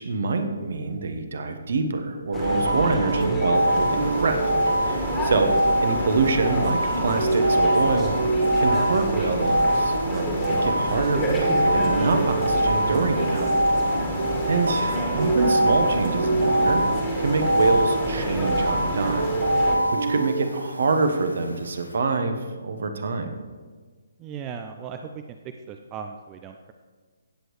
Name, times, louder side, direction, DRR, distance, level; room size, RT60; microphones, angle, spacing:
voice 1, 0.0-4.4 4.8-8.1 8.6-13.5 14.5-16.8 17.2-19.2 19.6-19.7 20.1-23.4, right 3 dB, 55° right, 6 dB, 1.1 m, -26 dB
sound 1, 2.3-19.8, left 1 dB, 15° left, 1.8 m, -30 dB
sound 2, 2.3-20.4, right 1 dB, 75° right, 0.8 m, -24 dB
sound 3, 3.5-22.0, left 1 dB, 80° left, 1.1 m, -46 dB
voice 2, 13.9-14.3 24.2-25.2 25.7-26.7, right 7 dB, 20° right, 6 dB, 0.4 m, -38 dB
16.0 x 7.9 x 3.2 m, 1.4 s
figure-of-eight pair, 135°, 0 cm